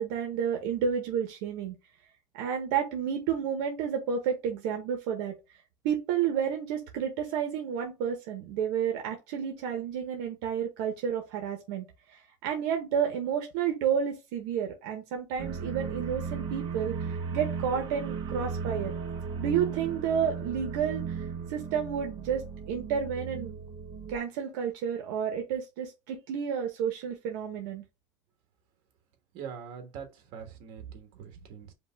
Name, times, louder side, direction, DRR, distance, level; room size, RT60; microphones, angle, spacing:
voice 1, 0.0-1.7 2.3-5.3 5.8-18.9 19.4-21.2 21.5-23.5 24.1-27.8, right 8 dB, 85° right, 1.0 m, -31 dB
sound 1, 15.4-24.2, right 6 dB, 45° right, 1.0 m, -36 dB
voice 2, 29.3-31.7, right 7 dB, 60° right, 1.4 m, -43 dB
5.2 x 2.3 x 3.4 m
cardioid pair, 145°, 11 cm